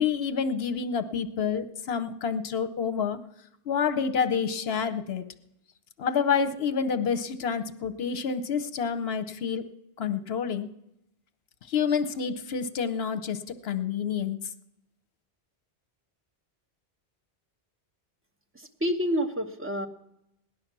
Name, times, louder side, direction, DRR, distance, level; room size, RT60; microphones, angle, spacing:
voice 1, 0.0-3.2 3.7-5.2 6.0-9.6 10.0-10.7 11.7-14.4, left 6 dB, 70° left, 9 dB, 1.0 m, -28 dB
voice 2, 18.5-19.9, equal, 10° right, 4 dB, 1.0 m, -28 dB
18.0 x 10.5 x 6.0 m, 0.84 s
omnidirectional pair, 1.1 m